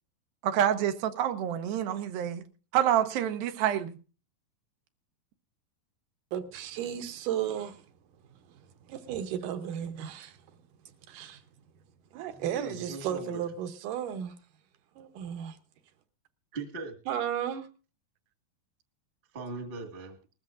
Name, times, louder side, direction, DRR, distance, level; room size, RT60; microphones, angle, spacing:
voice 1, 0.4-2.4 2.7-3.9, right 10 dB, 90° right, 2.7 m, -27 dB
voice 2, 6.3-7.8 8.9-10.4 11.1-11.4 12.1-14.4 15.0-15.6 17.1-17.7, right 10 dB, 75° right, 2.3 m, -34 dB
voice 3, 12.3-13.4 16.5-16.9 19.3-20.2, right 3 dB, 30° right, 1.0 m, -39 dB
19.5 x 13.5 x 2.5 m
omnidirectional pair, 4.1 m